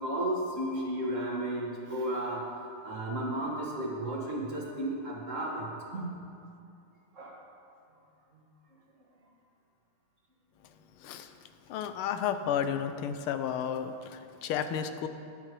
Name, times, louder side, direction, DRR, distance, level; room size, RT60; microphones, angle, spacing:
voice 1, 0.0-2.6 2.8-6.1 7.1-7.3, right 1 dB, 35° right, -3 dB, 1.9 m, -33 dB
voice 2, 10.9-15.1, left 8 dB, 80° left, 9 dB, 1.5 m, -33 dB
21.0 x 7.6 x 3.1 m, 2.5 s
omnidirectional pair, 2.4 m